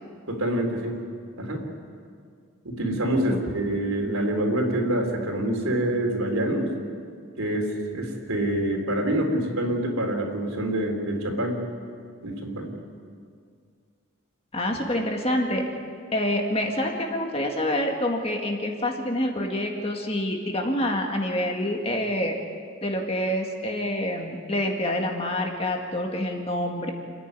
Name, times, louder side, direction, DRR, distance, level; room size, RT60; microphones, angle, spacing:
voice 1, 0.3-1.0 1.4-1.6 2.6-6.7 7.4-11.6 12.2-12.7, right 1 dB, 80° right, 2 dB, 3.7 m, -26 dB
voice 2, 14.5-15.7 16.1-22.4 22.8-26.9, left 1 dB, 25° left, 2 dB, 2.0 m, -27 dB
28.5 x 10.0 x 9.7 m, 2.2 s
head